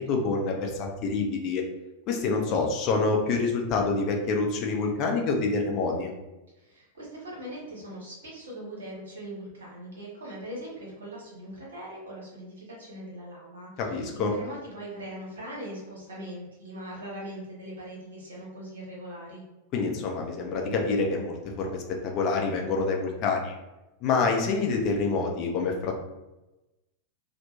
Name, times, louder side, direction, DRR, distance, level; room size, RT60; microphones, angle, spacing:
voice 1, 0.0-1.6 2.1-6.1 13.8-14.3 19.7-23.5 24.0-26.0, left 4 dB, 40° left, 1 dB, 0.5 m, -27 dB
voice 2, 6.6-13.7 14.2-19.4, right 1 dB, 65° right, -4 dB, 1.0 m, -40 dB
2.8 x 2.1 x 2.3 m, 1.0 s
figure-of-eight pair, 90°, 0 cm